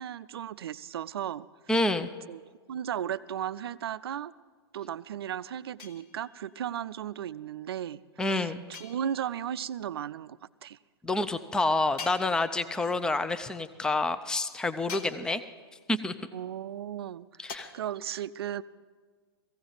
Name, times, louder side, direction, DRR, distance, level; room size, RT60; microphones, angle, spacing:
voice 1, 0.0-1.5 2.3-2.4 2.7-4.3 4.7-8.5 8.8-10.8 16.3-18.6, right 10 dB, 65° right, 17 dB, 0.4 m, -35 dB
voice 2, 1.7-2.1 8.2-8.6 11.0-15.4 15.9-16.1 17.4-17.7, left 2 dB, 5° left, 13 dB, 0.5 m, -28 dB
sound 1, 5.8-6.5 8.7-9.5 12.0-12.9 14.9-15.7 17.5-17.6, left 5 dB, 45° left, 1.3 m, -44 dB
17.0 x 15.5 x 4.0 m, 1.5 s
figure-of-eight pair, 115°, 14 cm